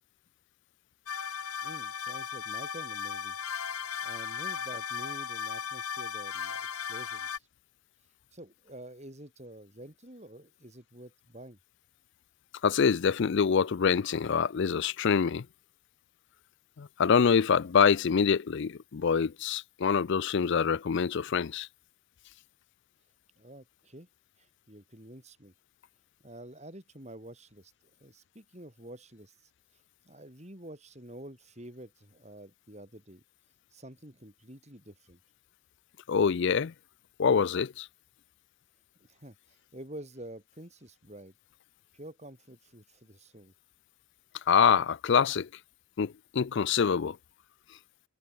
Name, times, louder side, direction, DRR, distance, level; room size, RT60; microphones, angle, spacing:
sound 1, 1.1-7.4, left 7 dB, 90° left, 2.2 m, -36 dB
voice 1, 1.6-3.4 3.6-7.5 8.3-11.6 23.4-24.1 24.4-25.5 26.2-27.7 28.0-33.2 33.7-35.2 39.0-41.3 41.9-43.5, right 1 dB, 30° right, 5.6 m, -48 dB
voice 2, 12.6-15.5 16.8-21.7 36.1-36.7 37.2-37.9 44.5-45.5 46.0-47.2, left 6 dB, 55° left, 0.4 m, -25 dB
head